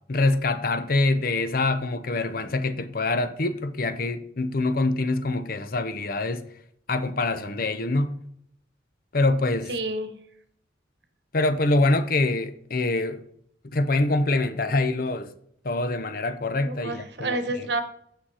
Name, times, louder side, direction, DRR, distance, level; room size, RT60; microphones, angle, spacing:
voice 1, 0.1-6.4 6.9-8.2 9.1-9.7 11.3-13.2 13.6-15.3 15.6-17.4, left 2 dB, 50° left, 0.7 m, -25 dB
voice 2, 9.7-10.1 16.6-17.8, right 2 dB, 65° right, 1.2 m, -29 dB
8.8 x 5.9 x 4.9 m
head